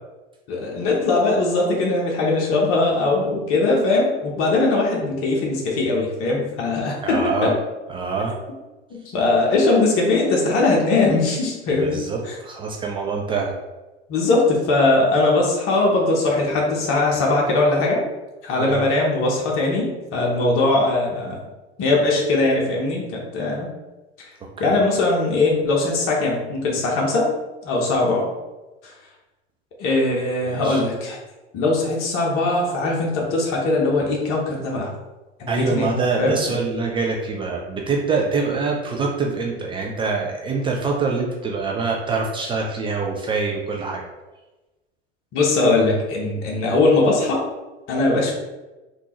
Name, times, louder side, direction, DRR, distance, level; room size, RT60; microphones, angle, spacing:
voice 1, 0.5-7.5 8.9-12.4 14.1-18.0 18.4-21.4 21.8-23.7 24.2-24.3 24.6-27.3 27.6-28.3 28.8-28.9 29.8-31.2 31.5-34.9 35.4-36.4 45.3-47.4 47.9-48.3, left 2 dB, 40° left, -2 dB, 0.9 m, -20 dB
voice 2, 7.0-7.5 7.9-8.3 11.8-13.5 18.6-18.8 24.6-24.8 30.5-30.8 35.5-44.0, right 4 dB, 15° right, -1 dB, 0.3 m, -25 dB
3.6 x 2.4 x 2.9 m, 1.1 s
figure-of-eight pair, 80°, 34 cm